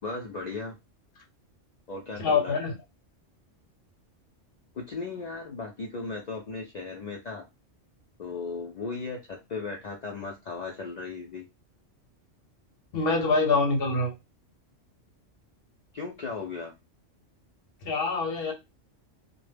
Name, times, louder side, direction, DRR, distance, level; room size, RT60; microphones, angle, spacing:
voice 1, 0.0-0.7 1.9-2.6 4.7-7.5 8.2-11.5 15.9-16.7, left 4 dB, 85° left, 0.3 m, -36 dB
voice 2, 2.2-2.7 12.9-14.1 17.8-18.5, left 3 dB, 60° left, 0.8 m, -25 dB
2.1 x 2.0 x 3.2 m
omnidirectional pair, 1.3 m